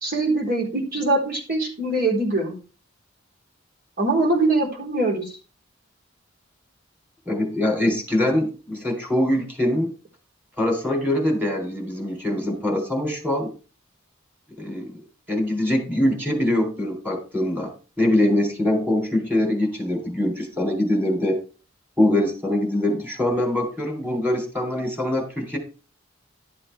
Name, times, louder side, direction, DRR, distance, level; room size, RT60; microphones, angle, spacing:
voice 1, 0.0-2.5 4.0-5.3, right 2 dB, 50° right, 0 dB, 3.8 m, -22 dB
voice 2, 7.2-9.9 10.6-13.5 14.6-15.0 15.3-21.4 22.0-25.6, left 1 dB, 10° right, 3 dB, 3.4 m, -23 dB
12.0 x 7.7 x 3.3 m, 0.35 s
head